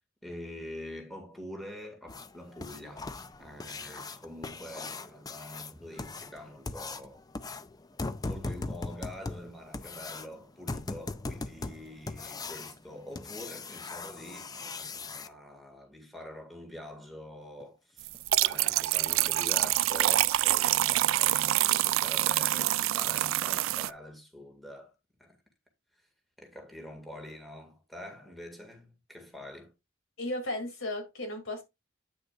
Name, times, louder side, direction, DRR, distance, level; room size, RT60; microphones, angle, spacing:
voice 1, 0.2-3.1 3.4-7.2 8.2-18.1 18.4-24.9 25.2-25.4 26.4-29.7, left 1 dB, ahead, 1.9 m, -45 dB
sound 1, 2.1-15.3 17.6-17.7 18.1-18.2 18.7-18.8 19.3-19.4 19.8-20.0 20.4-20.5 20.9-21.0, left 3 dB, 20° left, 0.4 m, -40 dB
sound 2, 18.1-23.9, right 15 dB, 75° right, 0.3 m, -26 dB
voice 2, 30.2-31.6, left 1 dB, 80° left, 2.6 m, -35 dB
9.0 x 6.4 x 2.4 m
head